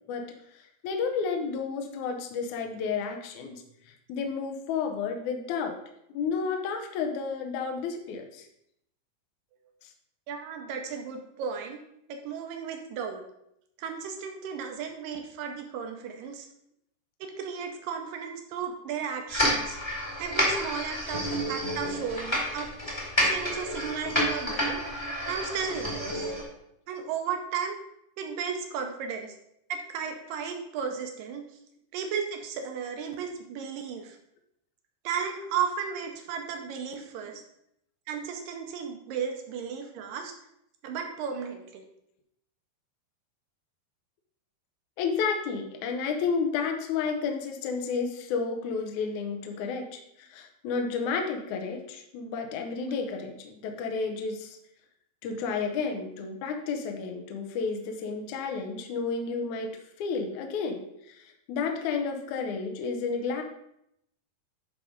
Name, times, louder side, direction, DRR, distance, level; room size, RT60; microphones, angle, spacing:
voice 1, 0.5-5.8 6.1-8.5 9.8-9.9 45.0-54.6 55.2-63.4, left 5 dB, 80° left, 4 dB, 1.7 m, -31 dB
voice 2, 10.3-11.8 12.1-13.2 13.8-16.5 17.2-19.8 20.2-24.8 25.3-26.3 26.9-27.8 28.2-29.3 29.7-31.5 31.9-34.2 35.0-37.4 38.1-40.3 40.8-41.8, right 6 dB, 75° right, 4 dB, 2.2 m, -34 dB
sound 1, 19.3-26.4, equal, 15° left, 0.9 m, -29 dB
10.5 x 3.8 x 4.9 m, 0.77 s
omnidirectional pair, 4.6 m